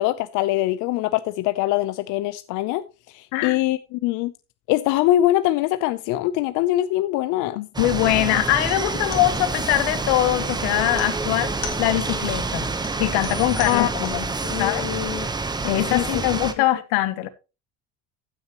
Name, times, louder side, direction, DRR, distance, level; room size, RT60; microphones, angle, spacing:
voice 1, 0.0-4.3 4.7-7.6 13.7-13.9 14.4-15.3 15.9-16.2, left 15 dB, 70° left, 0.6 m, -23 dB
voice 2, 7.6-12.7 13.0-14.3 14.6-14.8 15.6-17.3, left 15 dB, 90° left, 1.0 m, -22 dB
sound 1, 7.7-16.5, right 3 dB, 15° right, 0.8 m, -27 dB
sound 2, 9.0-14.4, left 6 dB, 50° left, 2.2 m, -40 dB
15.0 x 6.4 x 2.9 m
cardioid pair, 120°, 31 cm